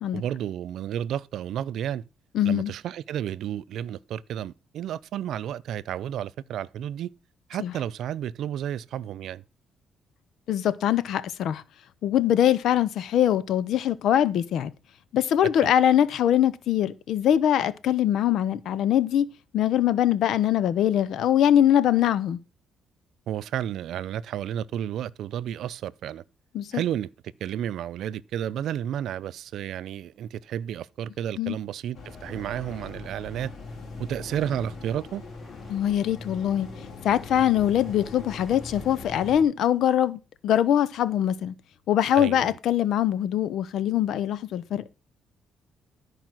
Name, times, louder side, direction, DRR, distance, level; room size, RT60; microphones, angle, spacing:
voice 1, 0.1-2.0 2.4-7.1 7.5-9.4 15.6-15.7 23.3-26.2 26.7-27.1 27.4-33.5 34.0-35.2 42.1-42.6, right 10 dB, 70° right, 0.5 m, -32 dB
voice 2, 2.3-2.7 7.6-7.7 10.5-11.6 12.0-14.7 15.1-19.3 19.5-22.4 26.5-26.8 31.4-31.6 35.7-36.7 37.0-41.5 41.9-44.9, left 10 dB, 75° left, 0.8 m, -23 dB
sound 1, 31.9-39.4, left 3 dB, 50° left, 4.0 m, -41 dB
sound 2, 32.3-39.0, left 2 dB, 20° left, 4.3 m, -53 dB
12.5 x 4.9 x 6.1 m
cardioid pair, 95°, 0 cm